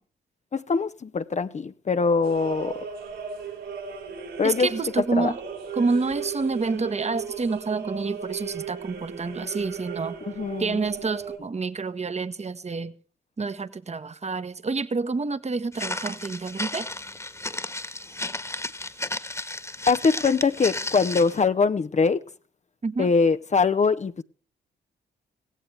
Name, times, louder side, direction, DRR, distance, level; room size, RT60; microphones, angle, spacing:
voice 1, 0.5-2.8 4.4-4.7 5.1-5.3 10.3-10.8 19.9-22.2 23.0-24.2, left 4 dB, 35° left, 0.8 m, -23 dB
sound 1, 2.2-11.4, right 7 dB, 80° right, 5.5 m, -37 dB
voice 2, 4.4-5.4 5.7-10.2 10.6-12.9 13.4-16.9 22.8-23.1, right 4 dB, 35° right, 1.3 m, -28 dB
Walk footsteps, 15.7-21.4, left 2 dB, 15° left, 1.6 m, -33 dB
16.5 x 16.5 x 3.4 m
supercardioid pair, 50°, 20 cm